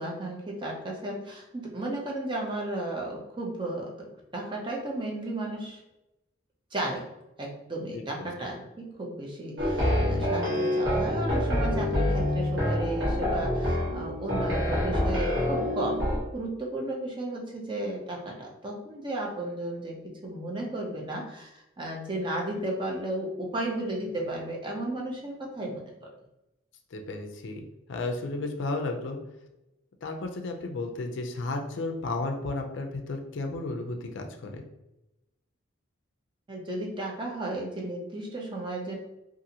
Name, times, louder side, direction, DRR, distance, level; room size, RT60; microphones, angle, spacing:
voice 1, 0.0-5.8 6.7-7.1 7.4-26.1 36.5-39.0, right 1 dB, 25° right, -1 dB, 0.5 m, -34 dB
voice 2, 7.9-8.3 26.9-29.2 30.0-34.6, left 2 dB, 65° left, 4 dB, 0.4 m, -33 dB
sound 1, 9.6-16.2, left 1 dB, 65° right, 1.2 m, -26 dB
2.7 x 2.4 x 2.7 m, 0.94 s
head